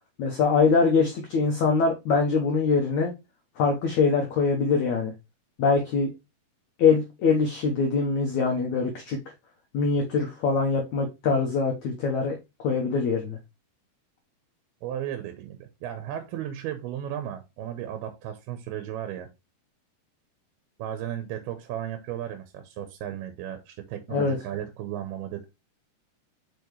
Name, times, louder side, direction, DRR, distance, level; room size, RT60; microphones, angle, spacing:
voice 1, 0.2-3.1 3.6-5.1 5.6-6.1 6.8-9.2 9.7-13.4 24.1-24.4, left 4 dB, 80° left, 1.6 m, -23 dB
voice 2, 14.8-19.3 20.8-25.5, right 11 dB, 75° right, 2.5 m, -35 dB
7.0 x 5.2 x 3.1 m
omnidirectional pair, 4.9 m